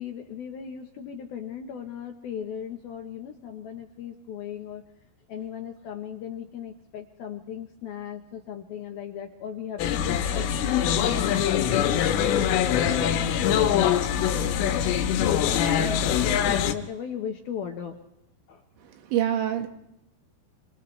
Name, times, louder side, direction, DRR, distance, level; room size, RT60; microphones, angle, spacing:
voice 1, 0.0-4.8 5.3-11.8 12.8-18.0 18.5-18.6, left 8 dB, 70° left, 4 dB, 2.4 m, -37 dB
sound 1, 9.8-16.7, left 9 dB, 85° left, 3.9 m, -23 dB
voice 2, 18.8-19.7, right 10 dB, 80° right, 5 dB, 4.2 m, -26 dB
29.5 x 26.0 x 3.4 m, 0.86 s
omnidirectional pair, 5.6 m